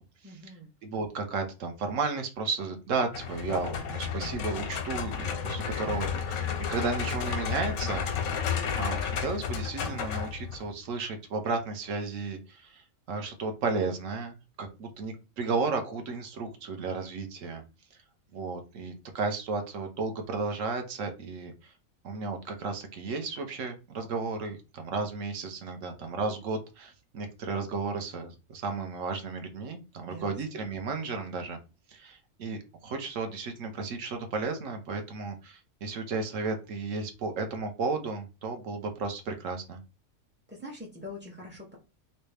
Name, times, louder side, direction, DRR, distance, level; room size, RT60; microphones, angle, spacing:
voice 1, 0.2-0.7 30.1-30.6 40.5-41.8, left 1 dB, 15° right, -2 dB, 0.3 m, -44 dB
voice 2, 0.8-6.4 6.7-8.1 8.8-17.6 18.3-21.7 22.0-31.6 31.9-39.8, right 4 dB, 65° right, 5 dB, 1.1 m, -33 dB
sound 1, 3.1-10.7, left 7 dB, 90° left, 1.1 m, -32 dB
3.2 x 2.7 x 3.2 m, 0.29 s
omnidirectional pair, 1.5 m